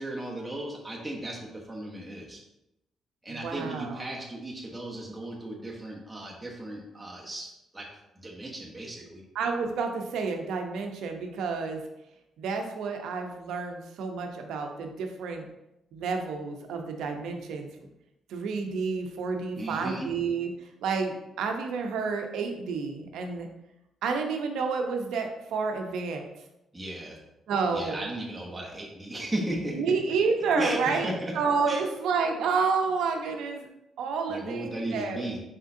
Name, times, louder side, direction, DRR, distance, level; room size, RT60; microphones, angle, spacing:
voice 1, 0.0-2.4 3.2-7.9 8.2-9.2 19.5-20.1 26.7-27.2 27.7-29.8 30.6-31.3 31.7-31.8 34.3-35.4, right 1 dB, 10° right, -3 dB, 0.9 m, -35 dB
voice 2, 3.3-4.0 9.3-11.8 12.4-15.5 15.9-17.7 18.3-20.5 20.8-23.5 24.0-26.3 27.5-28.0 29.7-31.1 31.3-33.7 34.0-35.2, right 5 dB, 80° right, 4 dB, 0.6 m, -29 dB
4.3 x 3.6 x 2.6 m, 0.88 s
cardioid pair, 90°, 0 cm